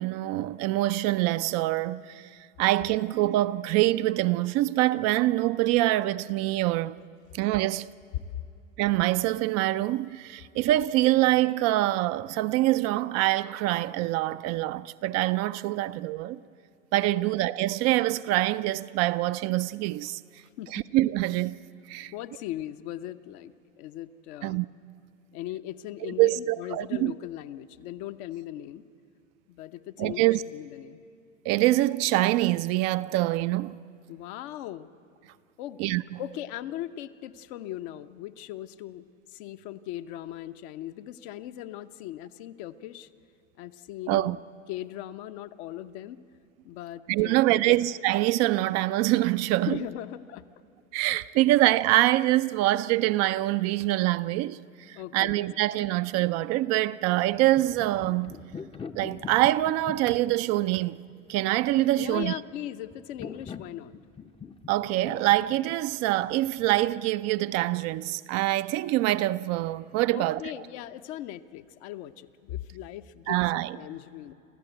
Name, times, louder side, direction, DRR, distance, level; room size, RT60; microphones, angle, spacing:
voice 1, 0.0-2.3 2.6-7.0 7.3-7.9 8.8-16.4 16.9-20.2 20.7-21.6 21.9-22.1 24.4-24.7 26.0-27.1 30.0-30.4 31.4-33.8 35.8-36.2 44.1-44.4 47.1-49.8 50.9-58.4 58.9-61.0 61.3-62.3 64.7-70.4 73.3-73.8, right 16 dB, 40° right, 0.5 m, -25 dB
voice 2, 22.1-24.6 25.3-28.8 29.5-31.0 34.1-34.9 35.6-35.8 36.2-39.0 39.3-43.1 43.6-44.4 44.7-46.2 46.6-47.8 49.7-50.4 54.9-55.4 61.9-63.9 70.1-74.3, left 13 dB, 55° left, 0.9 m, -39 dB
sound 1, 57.2-66.9, left 6 dB, 15° left, 0.7 m, -44 dB
28.0 x 14.5 x 8.0 m
hypercardioid pair, 85°, 39 cm